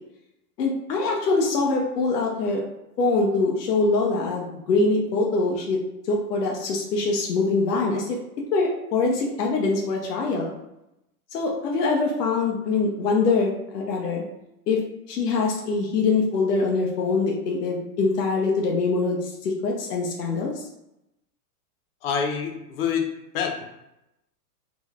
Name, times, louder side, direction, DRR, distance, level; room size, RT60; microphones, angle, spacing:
voice 1, 0.6-2.6 3.0-5.8 6.1-8.2 8.5-10.5 11.3-14.2 14.7-14.8 15.1-20.6, left 3 dB, 85° left, -1 dB, 0.9 m, -23 dB
voice 2, 22.0-23.1 23.3-23.7, left 7 dB, 40° left, 3 dB, 0.6 m, -26 dB
3.3 x 3.0 x 2.3 m, 0.88 s
hypercardioid pair, 140°, 46 cm